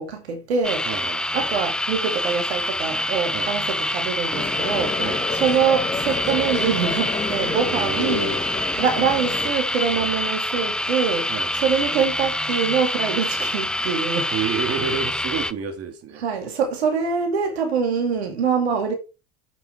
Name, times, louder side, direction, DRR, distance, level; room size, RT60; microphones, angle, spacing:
voice 1, 0.0-0.9 1.3-5.0 5.3-8.3 8.8-14.3 16.1-18.9, right 6 dB, 90° right, 2.4 m, -24 dB
sound 1, 0.6-15.5, left 1 dB, 5° left, 0.7 m, -26 dB
voice 2, 0.8-1.2 3.3-3.5 5.0-5.2 7.7-8.4 9.9-10.1 11.3-11.5 14.3-16.2, right 5 dB, 50° right, 3.0 m, -29 dB
sound 2, 4.3-9.5, left 4 dB, 20° left, 2.8 m, -30 dB
8.1 x 7.7 x 4.6 m
hypercardioid pair, 80°, 31 cm